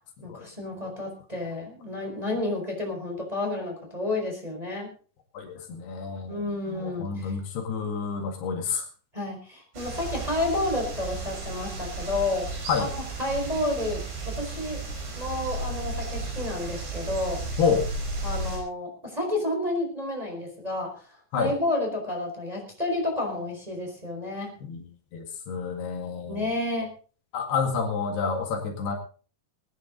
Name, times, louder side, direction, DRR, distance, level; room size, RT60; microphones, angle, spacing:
voice 1, 0.2-4.9 6.3-7.3 9.1-12.5 12.8-12.9 13.2-14.8 15.1-17.4 18.2-21.0 21.4-24.5 26.3-26.9, left 2 dB, 10° right, 0 dB, 4.3 m, -30 dB
voice 2, 5.3-6.4 6.7-8.8 12.7-12.9 17.6-17.9 21.3-21.6 24.7-26.5 27.3-29.0, left 5 dB, 70° left, 3 dB, 4.0 m, -29 dB
sound 1, 9.7-18.6, right 2 dB, 90° right, 7.4 m, -34 dB
22.5 x 10.0 x 3.9 m, 0.39 s
omnidirectional pair, 4.8 m